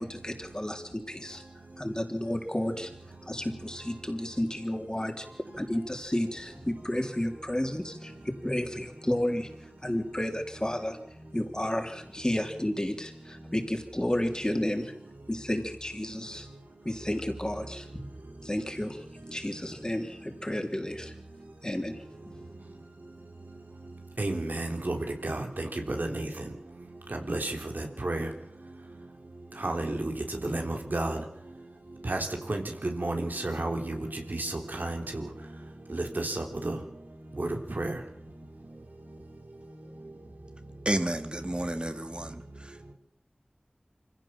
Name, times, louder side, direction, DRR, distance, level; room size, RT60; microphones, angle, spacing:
voice 1, 0.0-1.4 1.8-2.9 3.3-5.3 5.6-9.5 9.8-11.0 11.3-14.9 15.3-16.5 16.8-17.9 18.4-21.1 21.6-22.0, left 1 dB, 25° left, 4 dB, 3.5 m, -32 dB
voice 2, 24.2-26.4 27.1-28.3 29.6-30.1 30.4-31.2 32.0-35.3 35.9-36.8 37.3-37.5 37.8-37.9, right 2 dB, 85° right, 3 dB, 3.4 m, -32 dB
voice 3, 40.9-42.9, right 1 dB, 35° right, 8 dB, 2.2 m, -32 dB
25.5 x 16.0 x 7.5 m, 0.70 s
wide cardioid pair, 45°, 3 cm